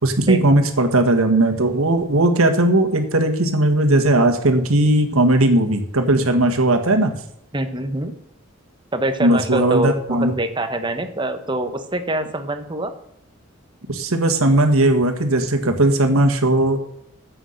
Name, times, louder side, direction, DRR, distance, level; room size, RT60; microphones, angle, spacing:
voice 1, 0.0-7.1 9.2-10.3 13.9-16.8, right 1 dB, 85° right, 6 dB, 1.7 m, -17 dB
voice 2, 7.5-8.1 8.9-12.9, right 1 dB, 20° right, 7 dB, 1.1 m, -24 dB
9.8 x 7.8 x 6.6 m, 0.76 s
head